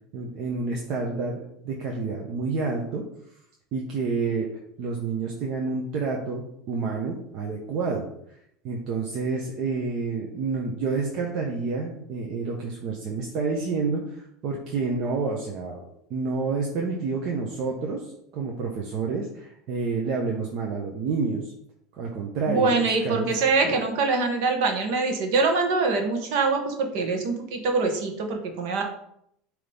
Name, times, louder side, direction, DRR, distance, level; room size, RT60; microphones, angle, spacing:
voice 1, 0.1-1.4 1.6-3.1 3.7-4.5 4.8-8.1 8.6-21.5 21.9-23.3, right 4 dB, 50° right, -1 dB, 1.0 m, -29 dB
voice 2, 22.5-28.8, right 3 dB, 70° right, 3 dB, 1.4 m, -24 dB
9.3 x 3.1 x 3.5 m, 0.74 s
supercardioid pair, 135°, 0 cm